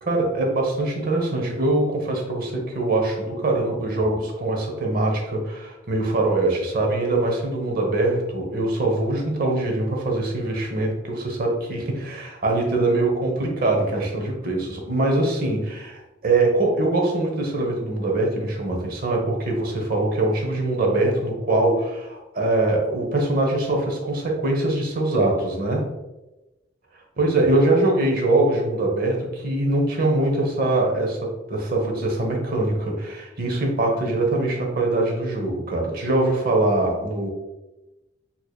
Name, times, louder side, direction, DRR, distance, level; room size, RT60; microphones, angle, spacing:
voice 1, 0.0-25.8 27.2-31.2 31.5-37.3, right 2 dB, 55° right, 1 dB, 0.8 m, -23 dB
4.6 x 2.8 x 2.3 m, 1.0 s
head